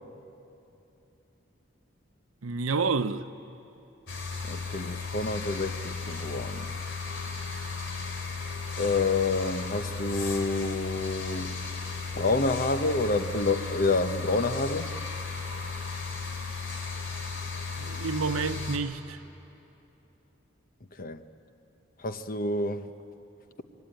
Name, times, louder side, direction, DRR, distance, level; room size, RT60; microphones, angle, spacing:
voice 1, 2.4-3.2 17.7-19.2, right 4 dB, 90° right, 0.8 m, -29 dB
sound 1, 4.1-18.8, left 4 dB, 60° left, 3.0 m, -35 dB
voice 2, 4.5-6.7 8.8-11.5 12.2-15.0 21.0-21.2 22.0-22.9, left 3 dB, 45° left, 1.0 m, -28 dB
26.0 x 23.0 x 9.2 m
head